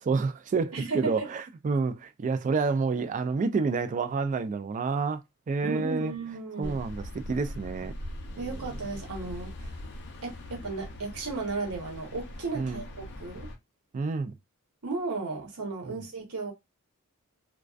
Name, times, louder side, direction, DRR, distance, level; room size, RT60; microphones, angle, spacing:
voice 1, 0.0-6.1 6.6-7.9 8.4-8.5 12.5-12.8 13.9-14.3 15.9-16.0, right 4 dB, 35° right, 0.3 m, -29 dB
voice 2, 0.7-1.3 5.6-6.8 8.4-9.7 10.2-13.5 14.8-16.5, right 3 dB, 80° right, 0.9 m, -35 dB
sound 1, 6.6-13.6, left 1 dB, 50° left, 0.5 m, -41 dB
2.4 x 2.2 x 2.3 m
head